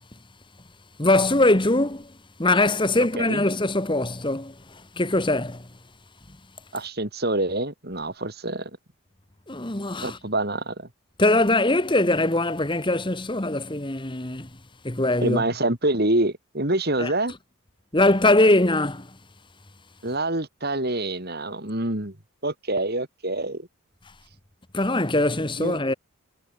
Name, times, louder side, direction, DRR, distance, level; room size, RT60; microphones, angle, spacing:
voice 1, 1.0-2.1 2.4-5.7 9.5-10.2 11.2-14.5 14.8-15.4 17.0-17.1 17.9-19.1 24.7-25.9, left 2 dB, 20° left, 1.5 m, -22 dB
voice 2, 6.7-8.7 10.0-10.9 15.2-17.3 20.0-22.2 22.4-23.7 25.6-25.8, right 2 dB, 45° right, 3.2 m, -26 dB
head